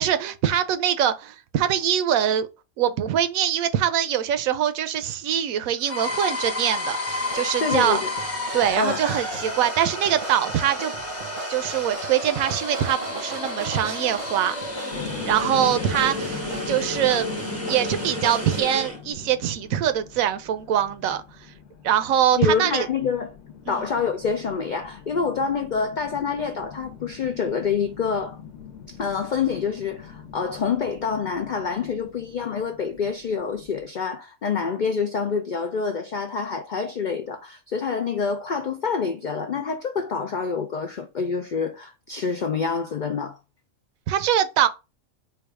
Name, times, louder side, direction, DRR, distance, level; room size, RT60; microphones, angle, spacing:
voice 1, 0.0-2.5 2.8-8.0 8.5-10.9 11.5-14.6 15.2-16.4 16.7-17.3 17.7-21.5 21.8-22.9 23.7-23.8 44.1-44.7, right 10 dB, 75° right, 1.0 m, -23 dB
sound 1, 5.8-19.0, left 1 dB, 10° left, 0.9 m, -31 dB
sound 2, 7.1-18.6, right 3 dB, 45° right, 0.7 m, -39 dB
voice 2, 7.6-8.1 8.8-9.0 22.4-23.3 23.7-28.4 28.9-43.4, left 5 dB, 90° left, 0.4 m, -27 dB
sound 3, 14.9-33.9, left 7 dB, 55° left, 1.0 m, -41 dB
4.6 x 2.4 x 4.6 m
omnidirectional pair, 1.5 m